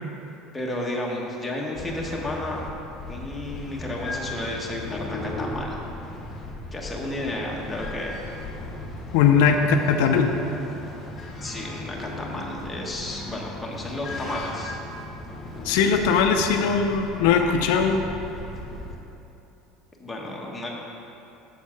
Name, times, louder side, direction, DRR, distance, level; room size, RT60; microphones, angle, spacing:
voice 1, 0.5-2.6 3.1-5.8 6.7-8.2 11.4-14.8 20.0-20.7, left 1 dB, 10° left, -3 dB, 1.2 m, -32 dB
sound 1, 1.7-19.0, left 2 dB, 35° left, 1.1 m, -37 dB
voice 2, 9.1-10.3 15.6-18.0, left 6 dB, 80° left, 5 dB, 0.5 m, -20 dB
7.2 x 4.4 x 5.9 m, 2.9 s
supercardioid pair, 115°, 0 cm